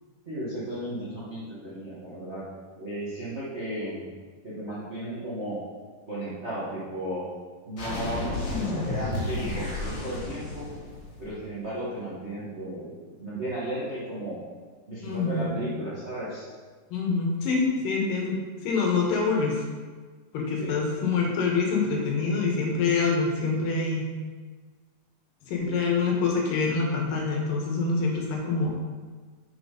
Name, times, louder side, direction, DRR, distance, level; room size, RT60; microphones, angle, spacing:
voice 1, 0.2-2.4 2.8-4.0 4.4-5.6 6.1-7.3 7.6-10.7 11.2-14.4 14.9-16.5 20.6-20.7 25.6-25.8, right 1 dB, 40° right, -8 dB, 0.9 m, -34 dB
sound 1, 7.8-11.5, left 2 dB, 45° left, 1.7 m, -32 dB
voice 2, 15.0-15.6 16.9-18.4 18.6-19.5 20.3-24.1 25.5-28.7, left 4 dB, 80° left, -1 dB, 3.1 m, -26 dB
6.6 x 5.9 x 5.1 m, 1.5 s
omnidirectional pair, 3.9 m